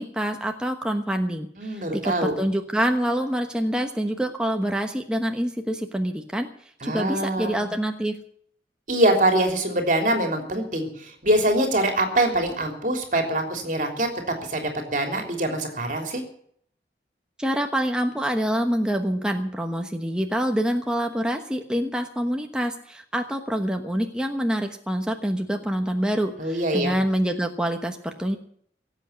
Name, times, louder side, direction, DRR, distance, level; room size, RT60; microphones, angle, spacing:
voice 1, 0.0-6.5 6.8-8.2 17.4-28.4, equal, 5° right, 3 dB, 1.1 m, -26 dB
voice 2, 1.6-2.3 6.8-7.7 8.9-16.2 26.4-26.9, right 1 dB, 45° right, 4 dB, 3.4 m, -24 dB
18.0 x 8.2 x 9.3 m, 0.64 s
head